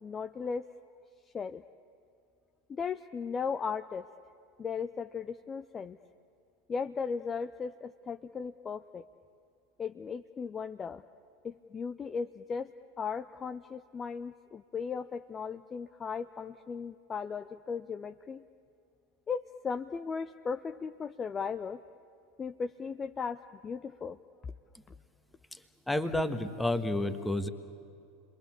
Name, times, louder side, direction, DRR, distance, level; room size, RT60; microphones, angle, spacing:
voice 1, 0.0-0.7 1.3-1.6 2.7-4.1 4.6-6.0 6.7-9.0 9.8-11.0 11.4-12.7 13.0-18.4 19.3-21.8 22.4-24.2, left 5 dB, 25° left, 10 dB, 0.6 m, -37 dB
voice 2, 25.9-27.5, left 1 dB, 5° left, 10 dB, 1.5 m, -30 dB
29.5 x 23.0 x 8.5 m, 2.5 s
figure-of-eight pair, 80°, 0 cm